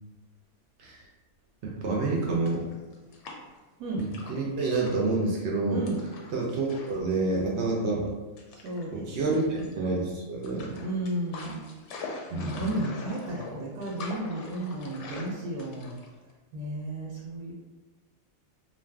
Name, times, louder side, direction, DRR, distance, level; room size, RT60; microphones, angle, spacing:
voice 1, 1.8-2.7 4.0-5.8 6.3-8.1 8.9-10.7 12.3-12.6, right 3 dB, 65° right, -2 dB, 0.7 m, -28 dB
sound 1, 2.3-3.6 4.0-5.2 5.9-7.1 7.3-7.5 8.4-8.9 9.3-10.0 10.4-16.3, left 3 dB, 65° left, 0.7 m, -43 dB
voice 2, 8.5-9.7 10.8-11.6 11.9-12.0 12.3-16.0 16.5-17.5, right 1 dB, 85° right, -4 dB, 1.1 m, -33 dB
2.5 x 2.4 x 3.3 m, 1.2 s
omnidirectional pair, 1.5 m